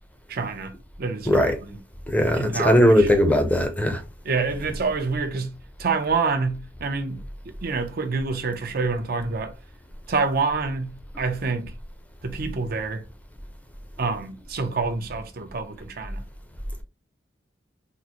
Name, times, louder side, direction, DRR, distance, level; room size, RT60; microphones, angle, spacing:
voice 1, 0.3-1.8 2.3-3.1 4.2-7.2 7.6-9.5 10.1-11.7 12.2-13.0 14.0-16.2, right 4 dB, 55° right, 0.6 m, -27 dB
voice 2, 2.1-4.0, equal, 10° left, 0.5 m, -19 dB
3.7 x 2.0 x 2.8 m
head